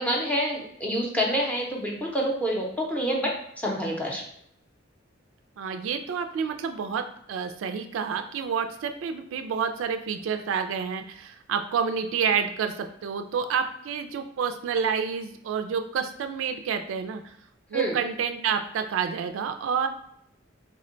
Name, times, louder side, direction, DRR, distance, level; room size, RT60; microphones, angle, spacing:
voice 1, 0.0-4.2 17.7-18.0, equal, 5° left, -2 dB, 0.6 m, -27 dB
voice 2, 5.6-17.3 17.7-19.9, right 6 dB, 75° right, 7 dB, 0.3 m, -29 dB
3.6 x 2.2 x 3.7 m, 0.71 s
head